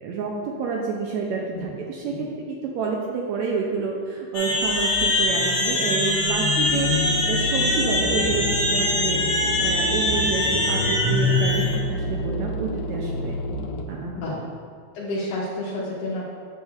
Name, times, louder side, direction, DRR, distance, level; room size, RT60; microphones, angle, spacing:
voice 1, 0.0-13.4 13.9-14.3, right 4 dB, 80° right, -1 dB, 1.8 m, -29 dB
sound 1, 4.3-11.8, left 2 dB, 50° left, 1.5 m, -23 dB
sound 2, 6.7-13.8, left 1 dB, 90° left, 1.3 m, -30 dB
voice 2, 14.9-16.3, left 1 dB, 70° left, -8 dB, 1.8 m, -30 dB
7.1 x 6.5 x 2.4 m, 2.2 s
omnidirectional pair, 3.3 m